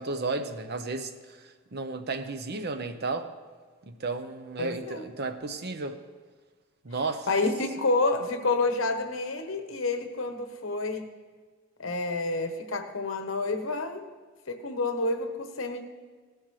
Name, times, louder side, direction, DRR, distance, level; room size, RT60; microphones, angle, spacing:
voice 1, 0.0-3.3 3.9-6.0 6.8-7.3, right 3 dB, 55° right, 8 dB, 0.8 m, -33 dB
voice 2, 4.6-5.0 7.3-11.1 11.8-14.0 14.5-15.8, left 3 dB, 85° left, 7 dB, 1.1 m, -29 dB
16.5 x 11.5 x 3.2 m, 1.5 s
head